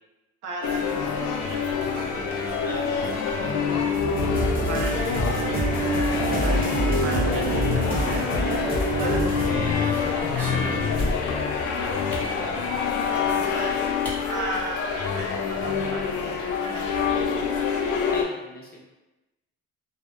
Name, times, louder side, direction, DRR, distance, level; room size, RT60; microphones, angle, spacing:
voice 1, 0.4-12.6 13.1-17.5, right 2 dB, 90° right, -1 dB, 0.6 m, -38 dB
sound 1, 0.6-18.2, left 5 dB, 80° left, 0.4 m, -26 dB
voice 2, 2.6-3.1 3.4-3.8 9.5-10.0 12.4-12.9 13.6-13.9 18.1-18.8, left 1 dB, 30° left, -3 dB, 0.7 m, -38 dB
sound 2, 4.1-9.5, right 2 dB, 30° right, 0.6 m, -26 dB
sound 3, 8.7-8.9 9.4-11.4 12.1-12.4 13.5-13.6 14.0-14.2 14.5-14.6 14.9-15.3, equal, 5° left, 0.9 m, -34 dB
2.7 x 2.0 x 2.3 m, 1.1 s
cardioid pair, 90°, 30 cm